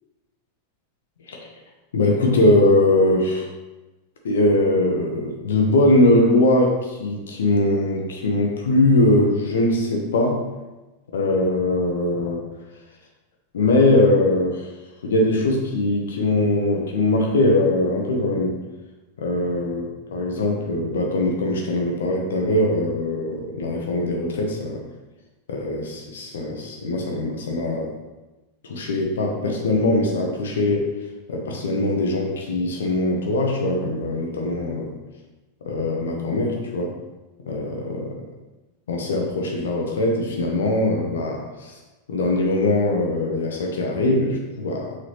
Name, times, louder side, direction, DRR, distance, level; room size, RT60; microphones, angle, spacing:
voice 1, 1.9-3.5 4.2-10.4 11.1-12.4 13.5-14.7 15.0-18.6 19.2-24.8 25.5-27.9 28.6-30.9 31.3-34.9 35.6-36.9 37.5-38.1 38.9-41.7 42.1-45.0, left 2 dB, 65° left, 1 dB, 0.9 m, -21 dB
6.5 x 4.3 x 3.3 m, 1.1 s
figure-of-eight pair, 90°, 0 cm